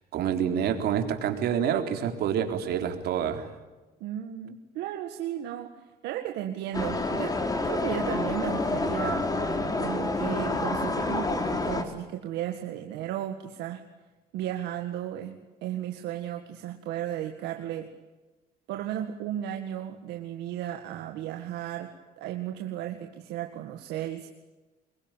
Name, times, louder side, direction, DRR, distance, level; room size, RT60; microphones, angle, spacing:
voice 1, 0.1-3.5, right 8 dB, 70° right, 5 dB, 3.9 m, -27 dB
voice 2, 4.0-9.3 9.8-13.8 14.3-17.9 18.7-24.3, right 11 dB, 90° right, 4 dB, 2.0 m, -35 dB
sound 1, 6.7-11.8, left 2 dB, 20° left, 3.6 m, -28 dB
25.5 x 22.5 x 9.2 m, 1.2 s
cardioid pair, 110°, 17 cm